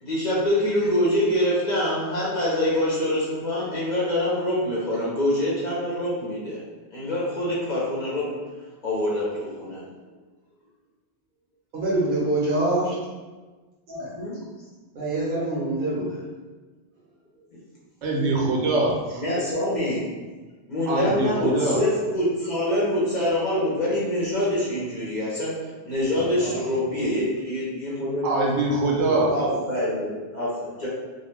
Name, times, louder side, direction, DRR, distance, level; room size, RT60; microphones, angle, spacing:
voice 1, 0.0-6.6 6.9-8.4 8.8-9.8 14.2-14.3 17.5-17.6 19.1-20.1 20.7-28.3 29.3-30.9, left 1 dB, 50° left, -7 dB, 0.6 m, -25 dB
voice 2, 11.7-12.9 13.9-14.1 14.9-16.2 26.4-26.6 29.0-29.2 29.5-29.6, right 2 dB, 55° right, -5 dB, 0.8 m, -25 dB
voice 3, 18.0-19.2 20.9-21.8 28.2-29.3, right 2 dB, 80° right, -2 dB, 0.9 m, -23 dB
2.3 x 2.1 x 3.1 m, 1.3 s
omnidirectional pair, 1.2 m